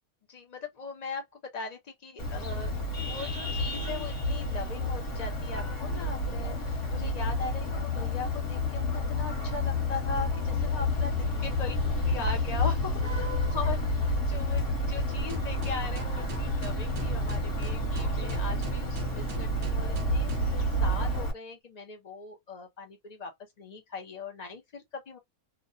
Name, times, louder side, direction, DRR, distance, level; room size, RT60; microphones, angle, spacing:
voice 1, 0.3-2.8 3.1-11.7 12.0-13.8 14.3-23.3 23.6-25.2, left 4 dB, 80° left, 0.3 m, -39 dB
Vehicle horn car horn honking, 2.2-21.3, left 1 dB, 40° left, 1.3 m, -30 dB
sound 1, 15.3-20.6, right 5 dB, 70° right, 0.6 m, -39 dB
2.9 x 2.2 x 2.6 m
omnidirectional pair, 1.7 m